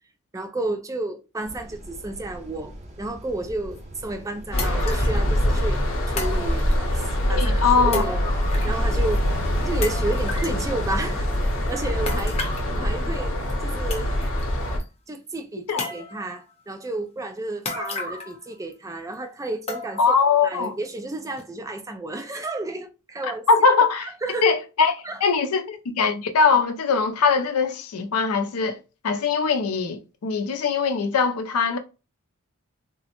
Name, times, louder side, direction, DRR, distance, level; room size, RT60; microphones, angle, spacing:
voice 1, 0.3-5.8 6.1-7.0 7.3-9.3 9.6-12.4 12.7-14.1 15.1-20.1 20.4-23.5 24.0-24.5 25.0-25.2, right 2 dB, 15° right, 0.4 m, -32 dB
sound 1, 1.4-11.0, equal, 35° right, 0.8 m, -34 dB
sound 2, 3.8-3.9 4.6-5.2 6.2-7.0 7.9-8.8 9.1-9.2 9.8-10.6 12.1-12.7 13.5-13.6 13.9-14.4 14.8-14.9 15.8-16.4 17.6-18.4 18.7-18.8 19.7-20.2 20.6-20.7 21.4-21.5, left 3 dB, 30° left, 0.7 m, -33 dB
sound 3, 4.5-14.8, equal, 60° left, 0.9 m, -24 dB
voice 2, 7.3-8.0 15.7-15.9 20.0-20.7 23.5-24.1 24.4-28.8 29.0-31.8, left 5 dB, 85° left, 0.5 m, -21 dB
3.6 x 2.0 x 2.8 m
head